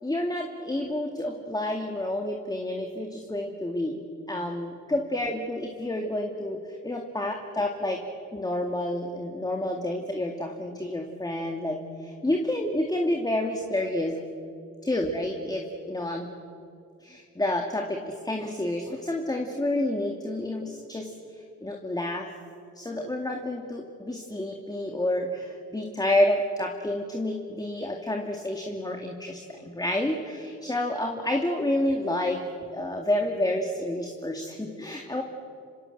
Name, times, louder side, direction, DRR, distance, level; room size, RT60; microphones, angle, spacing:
voice 1, 0.0-8.0 8.3-14.2 14.8-16.3 17.0-22.3 22.8-32.4 32.7-35.2, left 1 dB, 15° left, 2 dB, 2.4 m, -29 dB
27.5 x 26.0 x 7.9 m, 2.5 s
cardioid pair, 90°, 30 cm